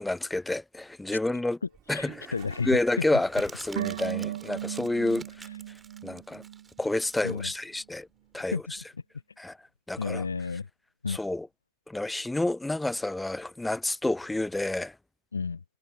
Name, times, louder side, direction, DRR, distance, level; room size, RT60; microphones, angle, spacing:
voice 1, 0.0-1.6 1.9-2.3 2.7-5.5 6.0-6.4 6.8-8.1 8.3-8.6 9.4-9.6 9.9-10.2 11.1-11.5 11.9-14.9, left 2 dB, 5° left, 0.4 m, -29 dB
Toilet flush, 1.6-4.7, right 14 dB, 35° right, 3.6 m, -52 dB
Crumpling crinkling, 1.7-8.8, right 5 dB, 15° right, 6.8 m, -51 dB
voice 2, 1.9-3.2 7.2-7.5 8.5-8.6 10.0-10.7 11.0-11.2 15.3-15.6, left 5 dB, 75° left, 0.6 m, -31 dB
sound 1, 3.8-7.1 7.3-7.4, right 12 dB, 60° right, 2.0 m, -36 dB
figure-of-eight pair, 90°, 0 cm